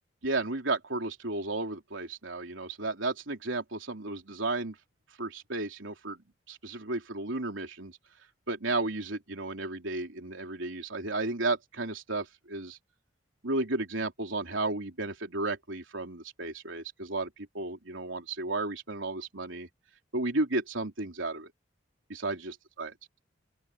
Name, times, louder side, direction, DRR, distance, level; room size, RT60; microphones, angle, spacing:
voice 1, 0.2-4.7 5.2-6.2 6.5-8.0 8.5-12.8 13.4-19.7 20.1-21.5 22.1-22.9, right 2 dB, 85° right, 3.5 m, -33 dB
open air
head